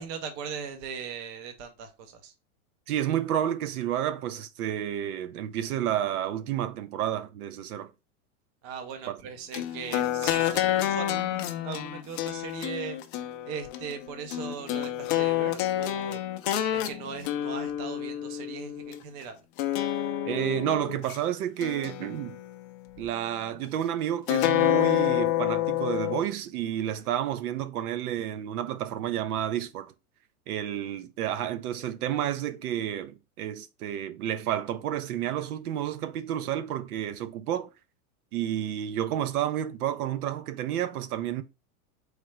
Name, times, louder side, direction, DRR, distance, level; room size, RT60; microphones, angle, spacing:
voice 1, 0.0-2.3 8.6-13.0 13.5-16.2 16.7-19.4, right 6 dB, 25° right, 0.4 m, -39 dB
voice 2, 2.9-7.9 9.1-9.2 20.2-22.4 23.0-29.9 30.5-37.7 38.3-41.4, right 11 dB, 80° right, 0.7 m, -30 dB
sound 1, 9.5-19.0 19.6-21.2 21.6-22.7 24.3-26.2, left 13 dB, 40° left, 0.4 m, -28 dB
3.7 x 3.3 x 3.0 m
supercardioid pair, 150°, 44 cm